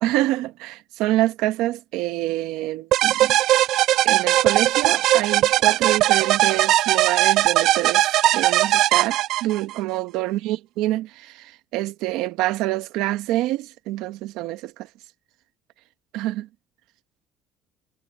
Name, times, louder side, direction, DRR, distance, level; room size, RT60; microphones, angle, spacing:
voice 1, 0.0-3.4 4.0-14.9 16.1-16.5, right 16 dB, 85° right, 1.0 m, -26 dB
sound 1, 2.9-9.8, right 15 dB, 65° right, 0.4 m, -19 dB
cardioid pair, 135°, 0 cm